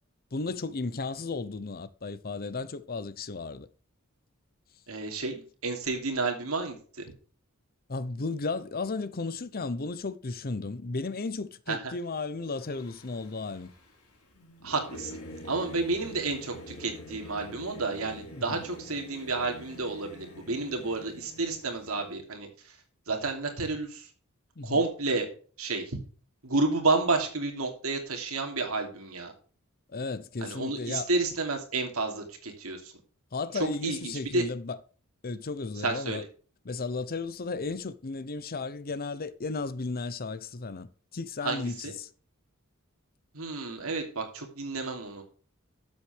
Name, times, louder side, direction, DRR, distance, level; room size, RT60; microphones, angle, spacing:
voice 1, 0.3-3.7 7.9-13.7 18.3-18.6 24.6-24.8 29.9-31.1 33.3-34.8 35.2-36.2 36.6-42.1, left 3 dB, 45° left, 0.7 m, -34 dB
voice 2, 4.9-7.0 11.7-11.9 14.6-15.2 15.4-22.8 23.1-24.1 24.6-25.3 25.6-26.0 26.4-29.3 30.4-32.9 33.5-34.4 35.8-36.2 41.4-41.9 43.3-45.2, right 3 dB, 70° right, 2.9 m, -31 dB
Singing / Musical instrument, 12.5-22.1, left 1 dB, 85° left, 4.2 m, -47 dB
12.5 x 7.7 x 3.4 m
head